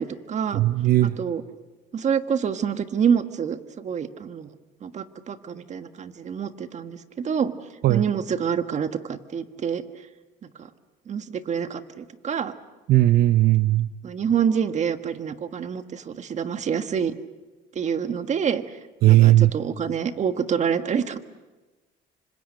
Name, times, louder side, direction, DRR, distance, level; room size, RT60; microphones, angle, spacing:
voice 1, 0.0-0.6 1.2-1.4 1.9-4.5 4.8-7.5 7.9-9.8 10.6-10.7 11.1-12.5 14.0-17.1 17.7-18.6 19.0-21.2, right 7 dB, 45° right, 9 dB, 1.5 m, -27 dB
voice 2, 0.5-1.2 7.8-8.0 12.9-13.9 19.0-19.5, right 15 dB, 65° right, 12 dB, 0.7 m, -17 dB
27.5 x 25.5 x 6.6 m, 1.2 s
cardioid pair, 110°, 17 cm